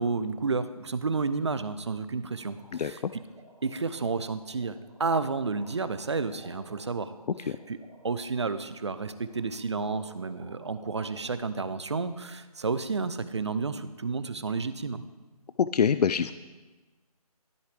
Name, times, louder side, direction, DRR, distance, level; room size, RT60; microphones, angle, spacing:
voice 1, 0.0-3.2 3.6-7.1 7.4-7.8 8.0-15.0, right 4 dB, 45° right, 13 dB, 0.5 m, -31 dB
sound 1, 2.2-11.3, right 1 dB, 5° right, 0.9 m, -54 dB
voice 2, 2.7-3.1 7.5-7.6 15.6-16.3, left 7 dB, 85° left, 13 dB, 0.4 m, -25 dB
13.5 x 8.1 x 3.4 m, 1.2 s
hypercardioid pair, 175°, 20 cm